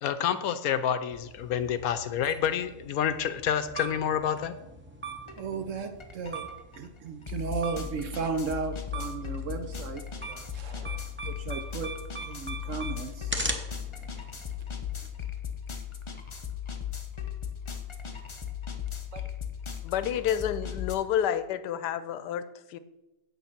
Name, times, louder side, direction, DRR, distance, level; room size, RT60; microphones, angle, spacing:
voice 1, 0.0-4.5, left 9 dB, 70° left, 11 dB, 1.0 m, -28 dB
sound 1, 1.1-15.1, right 3 dB, 10° right, 0.6 m, -41 dB
beeps edit, 5.3-5.4 5.8-20.9, left 8 dB, 40° left, 0.4 m, -37 dB
voice 2, 5.4-6.5 6.8-10.0 10.3-11.9 12.3-13.3 19.1-19.2, right 5 dB, 60° right, 8 dB, 0.9 m, -35 dB
voice 3, 19.8-22.8, left 9 dB, 90° left, 13 dB, 1.2 m, -29 dB
8.0 x 7.0 x 5.8 m, 0.99 s
omnidirectional pair, 1.7 m